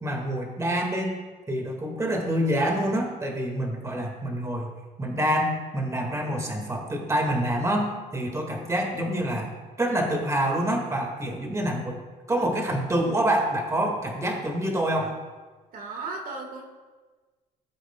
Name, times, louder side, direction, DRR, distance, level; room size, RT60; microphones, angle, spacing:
voice 1, 0.0-1.2 1.5-9.5 9.8-12.0 12.3-15.2, right 1 dB, 15° right, 1 dB, 1.9 m, -27 dB
voice 2, 15.7-16.6, right 3 dB, 55° right, 1 dB, 1.8 m, -35 dB
17.5 x 7.7 x 2.3 m, 1.3 s
cardioid pair, 110°, 17 cm